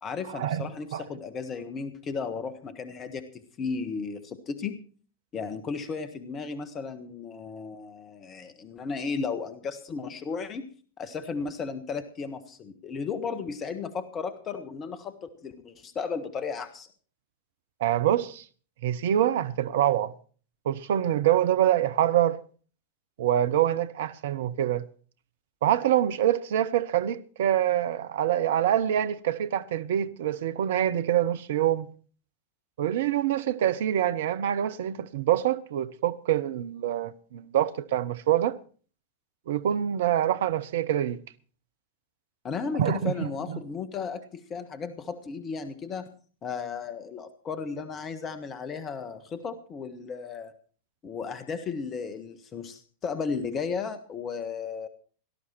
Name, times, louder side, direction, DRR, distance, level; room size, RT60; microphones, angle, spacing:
voice 1, 0.0-4.8 5.3-10.7 11.0-16.9 42.4-46.1 46.4-50.5 51.0-54.9, left 5 dB, 25° left, 1.6 m, -34 dB
voice 2, 17.8-18.4 18.8-20.1 20.7-22.4 23.2-24.8 25.6-31.9 32.8-38.6 39.5-41.2 42.7-43.6, right 11 dB, 55° right, 0.8 m, -25 dB
18.5 x 12.5 x 4.6 m
figure-of-eight pair, 90°, 0 cm